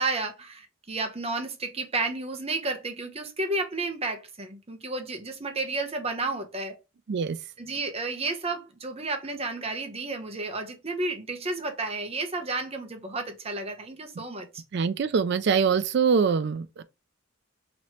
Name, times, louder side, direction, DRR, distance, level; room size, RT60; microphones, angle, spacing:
voice 1, 0.0-6.8 7.6-14.6, right 3 dB, 30° right, 0.8 m, -32 dB
voice 2, 14.7-16.8, right 6 dB, 55° right, 0.4 m, -24 dB
3.1 x 3.0 x 4.2 m
head